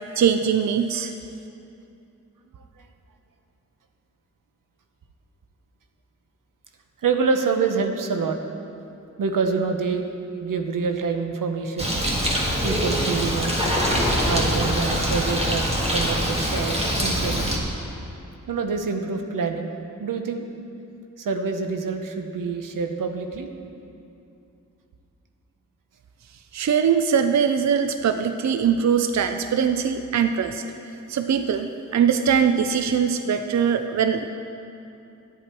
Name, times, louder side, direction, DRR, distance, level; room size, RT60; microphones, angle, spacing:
voice 1, 0.2-1.1 26.5-30.6 31.1-34.3, right 7 dB, 60° right, 8 dB, 0.5 m, -21 dB
voice 2, 2.5-2.8 7.0-8.4 9.2-10.1 10.4-11.9 12.6-13.6 14.2-17.5 18.5-19.7 20.0-20.5 21.2-23.5, right 5 dB, 90° right, 5 dB, 0.8 m, -26 dB
Bird, 11.8-17.6, equal, 20° right, 1.7 m, -23 dB
12.0 x 8.2 x 4.5 m, 2.8 s
wide cardioid pair, 65°, 32 cm